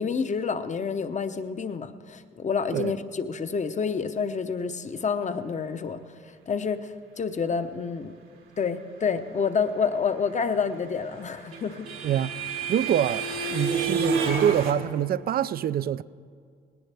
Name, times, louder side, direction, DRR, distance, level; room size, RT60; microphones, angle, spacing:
voice 1, 0.0-8.1 8.6-11.9, left 5 dB, 35° left, 0.8 m, -28 dB
sound 1, 10.9-14.7, right 4 dB, 85° right, 1.8 m, -29 dB
voice 2, 12.0-12.4 12.7-16.0, right 10 dB, 50° right, 0.4 m, -25 dB
19.0 x 18.0 x 3.4 m
cardioid pair, 90°, 20 cm